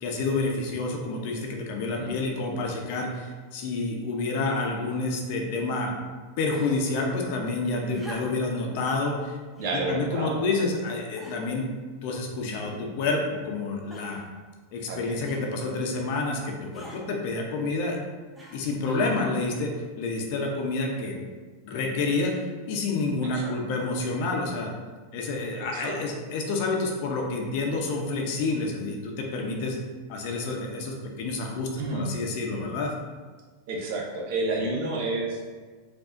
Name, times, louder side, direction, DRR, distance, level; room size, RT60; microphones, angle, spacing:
voice 1, 0.0-5.9 6.4-9.4 9.7-11.7 12.0-14.2 14.7-18.0 18.5-21.2 21.6-24.7 25.1-29.8 30.1-32.9, left 3 dB, 60° left, 1 dB, 0.7 m, -29 dB
sound 1, 6.5-7.0 7.9-8.6 9.6-9.9 10.6-10.7 11.2-11.6 12.4-13.0 13.9-14.3 15.2-15.5 16.7-17.0 18.3-18.8 19.8-19.9, equal, 10° right, 0.8 m, -45 dB
voice 2, 9.6-10.4 14.9-15.0 18.9-19.1 23.2-23.5 25.7-25.9 31.8-32.0 33.7-35.4, right 3 dB, 65° right, -1 dB, 1.0 m, -30 dB
4.7 x 2.7 x 2.6 m, 1.4 s
hypercardioid pair, 115°, 0 cm